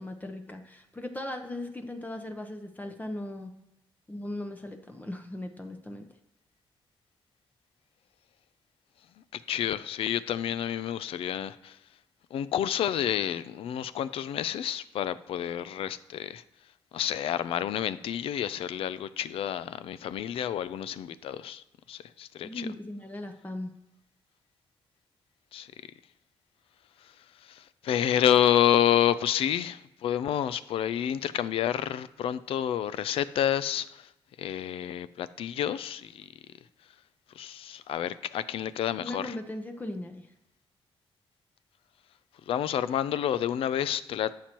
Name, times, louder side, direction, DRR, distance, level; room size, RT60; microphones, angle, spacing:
voice 1, 0.0-3.5 4.1-6.1 22.4-23.7 39.0-40.3, left 1 dB, 15° left, 0.8 m, -38 dB
voice 2, 9.3-11.8 12.3-16.4 16.9-22.7 25.5-25.7 27.0-34.1 34.4-36.3 37.3-39.4 42.5-44.3, left 10 dB, 80° left, 0.4 m, -29 dB
11.5 x 7.6 x 3.0 m
cardioid pair, 85°, 10 cm